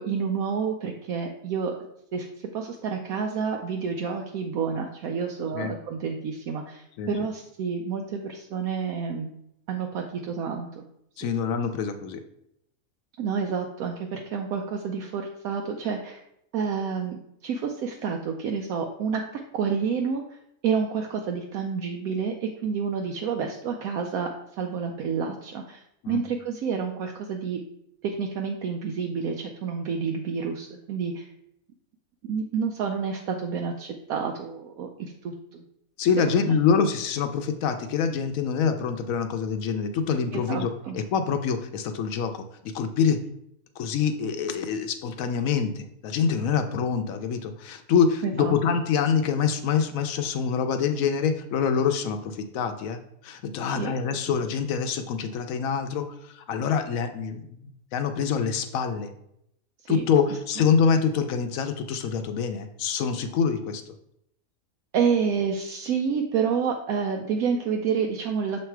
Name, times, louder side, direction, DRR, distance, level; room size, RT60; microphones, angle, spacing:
voice 1, 0.0-1.7 2.1-9.3 9.7-10.8 13.2-16.2 16.5-19.2 19.5-20.2 20.6-24.3 24.6-27.6 28.0-31.3 32.2-35.6 36.3-36.6 40.3-41.0 48.2-48.5 53.7-53.9 59.9-60.0 64.9-68.6, right 6 dB, 75° right, 2 dB, 1.0 m, -29 dB
voice 2, 11.2-12.2 26.0-26.2 36.0-43.2 43.8-59.1 59.9-63.9, left 6 dB, 70° left, 7 dB, 0.9 m, -26 dB
6.8 x 3.2 x 4.5 m, 0.77 s
omnidirectional pair, 1.6 m